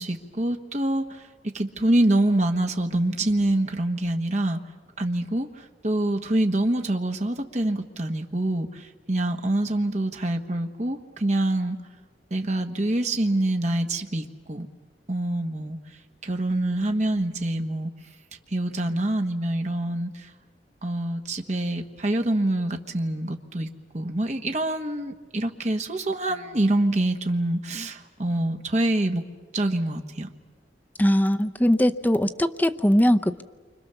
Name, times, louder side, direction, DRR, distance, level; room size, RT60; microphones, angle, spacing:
voice 1, 0.0-4.6 5.0-11.8 12.3-14.7 15.1-15.8 16.2-17.9 18.5-20.3 20.8-23.7 23.9-29.2 29.5-30.3, right 1 dB, 40° right, 5 dB, 1.4 m, -26 dB
voice 2, 31.0-33.4, equal, 10° left, 7 dB, 0.7 m, -21 dB
28.5 x 25.5 x 6.9 m, 1.4 s
head